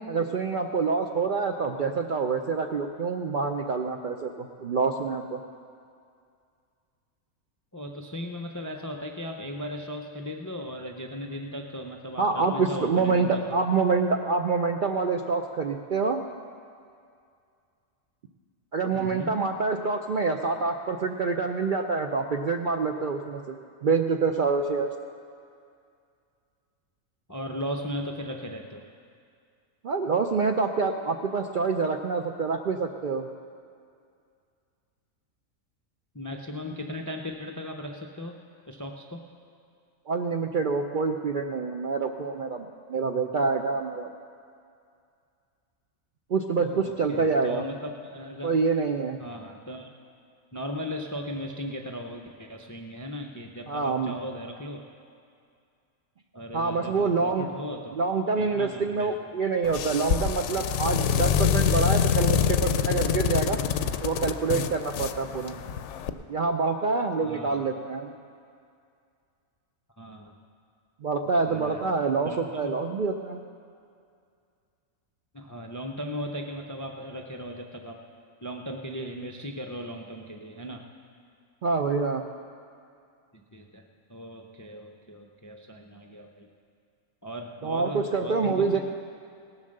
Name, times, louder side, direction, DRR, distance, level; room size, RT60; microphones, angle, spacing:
voice 1, 0.1-5.4 12.2-16.2 18.7-23.5 23.8-24.9 29.8-33.3 40.1-44.1 46.3-47.6 48.4-49.2 53.7-54.1 56.5-57.5 58.0-63.6 64.0-65.5 66.3-68.1 71.0-73.4 81.6-82.2 87.6-88.8, right 4 dB, 55° right, 4 dB, 0.5 m, -26 dB
voice 2, 7.7-13.6 18.9-19.4 27.3-28.9 36.1-38.4 38.7-39.2 46.6-48.5 49.2-49.9 50.5-54.9 56.3-58.0 58.4-59.3 65.4-65.8 67.2-67.7 70.0-70.3 71.5-71.9 72.2-72.8 75.3-78.0 78.4-80.9 83.3-86.5 87.2-88.8, equal, 25° left, 3 dB, 0.4 m, -37 dB
sound 1, 59.6-66.1, left 8 dB, 70° left, 0.8 m, -26 dB
18.0 x 7.3 x 6.5 m, 2.3 s
omnidirectional pair, 1.4 m